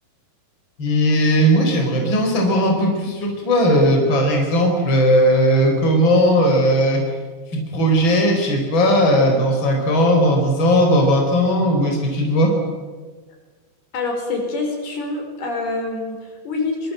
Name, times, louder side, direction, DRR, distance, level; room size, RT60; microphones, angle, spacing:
voice 1, 0.8-7.0 7.7-12.5, equal, 30° left, 2 dB, 4.9 m, -17 dB
voice 2, 13.9-16.9, left 3 dB, 70° left, 2 dB, 6.7 m, -26 dB
24.5 x 24.0 x 7.9 m, 1.4 s
omnidirectional pair, 4.7 m